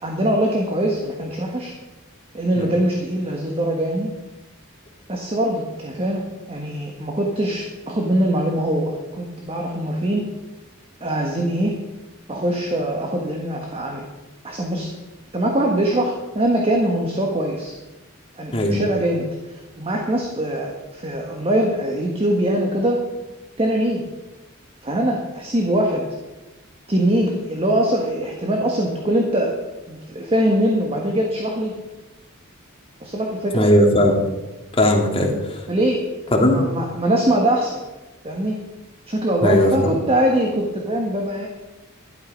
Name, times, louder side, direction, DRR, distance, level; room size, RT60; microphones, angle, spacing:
voice 1, 0.0-1.7 2.3-4.1 5.1-6.2 6.5-10.3 11.0-11.8 12.3-14.0 14.4-14.9 15.3-17.8 18.4-23.1 23.6-24.0 24.8-26.1 26.9-29.6 29.9-31.7 33.0-33.7 35.7-37.8 38.2-38.6 39.1-41.5, right 1 dB, 30° right, 1 dB, 1.5 m, -22 dB
voice 2, 33.5-34.2 34.8-35.3 36.3-36.6 39.4-39.9, left 1 dB, 25° left, 1 dB, 2.3 m, -17 dB
12.5 x 12.0 x 5.3 m, 1.1 s
head